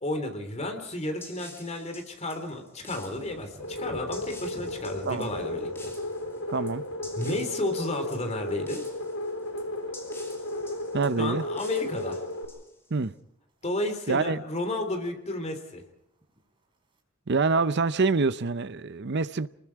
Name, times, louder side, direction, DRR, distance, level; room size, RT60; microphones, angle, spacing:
voice 1, 0.0-5.9 7.2-8.8 11.2-12.2 13.6-15.8, left 1 dB, 30° left, 3.4 m, -32 dB
sound 1, 0.8-13.0, left 2 dB, 10° left, 3.0 m, -49 dB
Thunder, 0.9-1.4 1.7-12.1 12.5-12.8 13.3-13.7 14.0-14.1 14.2-14.3 14.7-15.3 16.1-17.0, equal, 25° right, 4.5 m, -53 dB
sound 2, 3.6-12.4, left 1 dB, 75° left, 4.7 m, -34 dB
voice 2, 6.5-6.8 10.9-11.4 12.9-13.1 14.1-14.4 17.3-19.5, right 4 dB, 55° right, 0.7 m, -26 dB
27.5 x 21.0 x 4.7 m
head